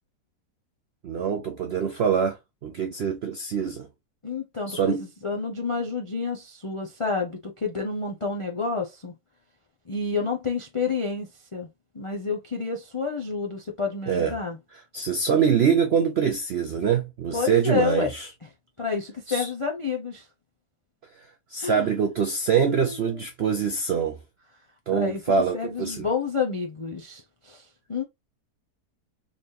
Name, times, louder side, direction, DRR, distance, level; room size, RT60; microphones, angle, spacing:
voice 1, 1.0-3.9 4.7-5.0 14.1-14.3 14.9-18.3 19.3-19.5 21.5-24.2 24.9-26.1, right 7 dB, 70° right, 0.6 m, -24 dB
voice 2, 4.2-9.1 9.9-11.7 11.9-14.6 17.3-18.1 18.8-20.3 21.6-21.9 22.6-23.1 24.9-28.0, left 5 dB, 45° left, 0.4 m, -29 dB
4.0 x 3.3 x 2.6 m
omnidirectional pair, 1.7 m